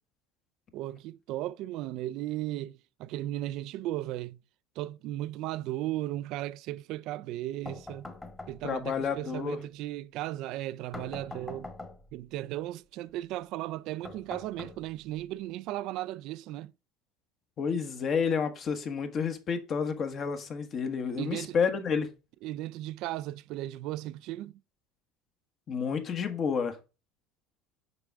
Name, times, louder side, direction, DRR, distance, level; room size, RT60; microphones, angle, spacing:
voice 1, 0.7-4.4 4.8-8.1 8.5-11.7 12.1-16.7 21.1-21.6 22.4-24.6, right 15 dB, 65° right, 0.3 m, -36 dB
sound 1, 7.7-8.9 10.9-12.2 14.0-15.2, left 2 dB, 15° left, 1.4 m, -44 dB
voice 2, 8.6-9.6 17.6-22.1 25.7-26.8, left 6 dB, 45° left, 1.3 m, -30 dB
6.6 x 5.0 x 3.5 m
supercardioid pair, 90°, 0 cm